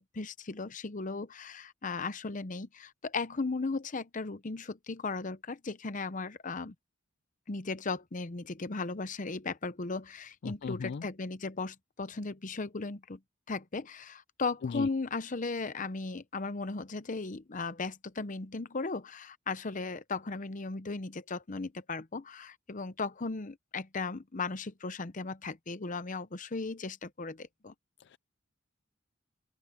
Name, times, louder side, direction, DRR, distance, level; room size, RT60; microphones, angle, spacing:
voice 1, 0.0-6.7 7.5-13.2 13.5-27.7, left 3 dB, 40° left, 0.8 m, -36 dB
voice 2, 10.4-11.0 14.6-14.9 28.1-28.2, left 5 dB, 60° left, 0.4 m, -36 dB
open air
head